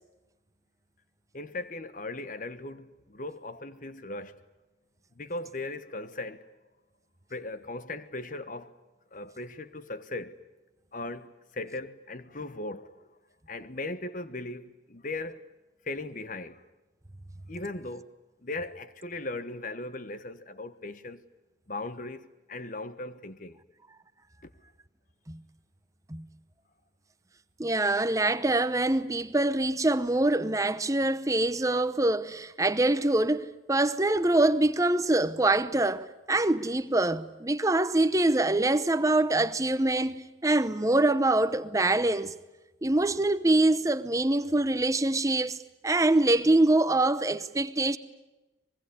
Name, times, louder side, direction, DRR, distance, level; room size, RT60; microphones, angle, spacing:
voice 1, 1.3-4.4 5.1-6.4 7.3-8.7 9.1-10.4 10.9-13.0 13.5-15.4 15.8-16.6 17.5-18.1 18.4-21.2 21.7-23.6 24.4-24.5, left 2 dB, 40° left, 1.3 m, -38 dB
voice 2, 27.6-42.3 42.8-45.6 45.8-48.0, right 2 dB, 15° right, 0.8 m, -24 dB
25.0 x 22.0 x 9.8 m
head